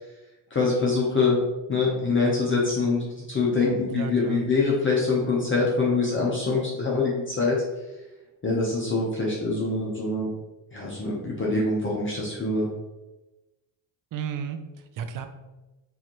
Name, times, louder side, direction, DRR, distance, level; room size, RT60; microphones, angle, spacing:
voice 1, 0.5-1.4 1.7-7.6 8.4-10.3 10.7-12.7, left 3 dB, 25° left, -3 dB, 0.9 m, -24 dB
voice 2, 3.9-4.5 14.1-15.3, right 7 dB, 45° right, 8 dB, 0.5 m, -33 dB
4.7 x 2.8 x 3.0 m, 1.1 s
cardioid pair, 95°, 45 cm